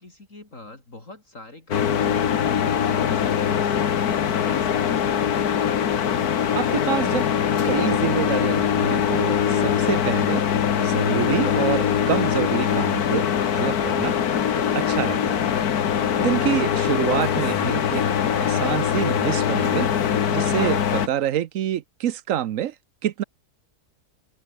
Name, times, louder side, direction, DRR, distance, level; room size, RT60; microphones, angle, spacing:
voice 1, 0.0-5.4, left 2 dB, 50° left, 4.8 m, -44 dB
sound 1, 1.7-21.1, left 8 dB, 70° left, 1.7 m, -22 dB
voice 2, 6.5-7.3 7.6-10.4 10.8-13.3 13.5-14.2 14.6-15.4 16.2-18.0 18.3-19.9 20.3-22.7 23.0-23.2, right 11 dB, 60° right, 1.1 m, -27 dB
omnidirectional pair, 1.7 m